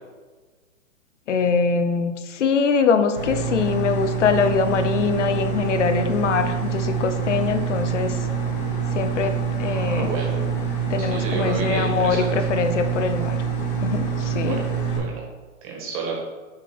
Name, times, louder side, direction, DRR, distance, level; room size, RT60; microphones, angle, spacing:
voice 1, 1.3-8.3 8.9-10.1 10.9-13.4 13.8-14.6, left 5 dB, 60° left, 8 dB, 0.8 m, -23 dB
sound 1, 3.2-15.0, right 6 dB, 40° left, 1.9 m, -26 dB
voice 2, 9.6-10.4 11.0-12.3 14.3-14.6 14.9-15.2 15.6-16.2, right 4 dB, 25° right, -1 dB, 1.6 m, -30 dB
7.2 x 3.5 x 5.1 m, 1.3 s
hypercardioid pair, 160°, 40 cm